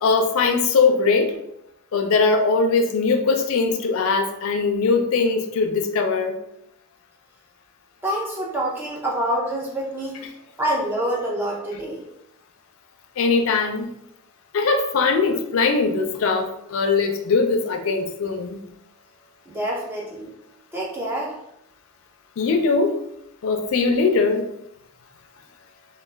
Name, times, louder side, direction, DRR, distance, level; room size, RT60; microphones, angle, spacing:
voice 1, 0.0-1.3 1.9-6.4 13.2-13.9 14.5-18.6 22.4-22.9 23.4-24.4, left 4 dB, 70° left, 5 dB, 0.3 m, -21 dB
voice 2, 8.0-10.3 10.6-12.0 19.5-20.3 20.7-21.4, right 1 dB, 10° right, -3 dB, 0.4 m, -26 dB
2.2 x 2.1 x 3.1 m, 0.80 s
head